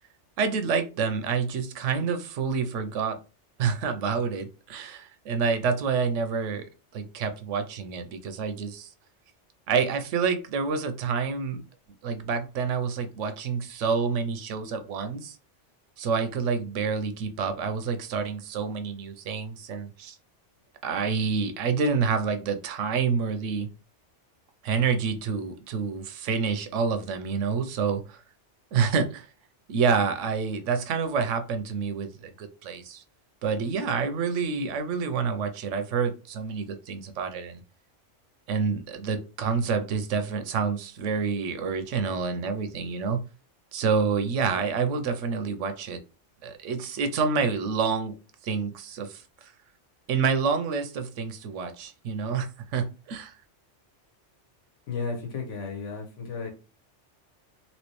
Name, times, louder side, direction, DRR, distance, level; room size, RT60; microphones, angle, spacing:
voice 1, 0.4-3.2 3.6-6.7 6.9-8.9 9.7-11.6 12.0-15.4 16.0-20.2 20.8-23.7 24.6-28.2 28.7-29.3 29.7-33.0 33.4-37.6 38.5-43.2 43.7-46.0 46.4-48.1 48.4-49.5 50.1-53.3, right 5 dB, 90° right, 9 dB, 1.0 m, -28 dB
voice 2, 54.9-56.5, left 4 dB, 85° left, 2 dB, 1.2 m, -33 dB
3.1 x 2.9 x 3.1 m, 0.33 s
omnidirectional pair, 1.2 m